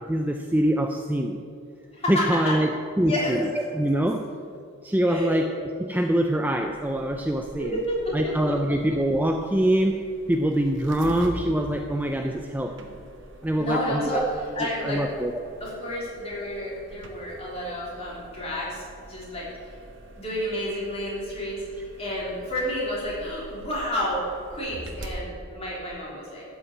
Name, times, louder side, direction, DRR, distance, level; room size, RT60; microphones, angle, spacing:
voice 1, 0.0-1.4 2.1-2.7 3.0-3.5 3.7-4.3 4.8-5.5 5.8-7.8 8.1-10.0 10.3-13.0 13.4-14.3 14.6-15.4 17.6-17.7, right 1 dB, 10° right, 4 dB, 0.4 m, -24 dB
voice 2, 1.9-2.6 3.0-3.4 5.1-5.3 7.6-8.5 13.6-14.2 14.5-15.0 15.6-19.5 20.2-26.4, left 1 dB, 30° left, -6 dB, 3.4 m, -30 dB
sound 1, 6.6-25.2, right 1 dB, 55° right, 1.1 m, -45 dB
12.0 x 5.6 x 8.5 m, 2.4 s
head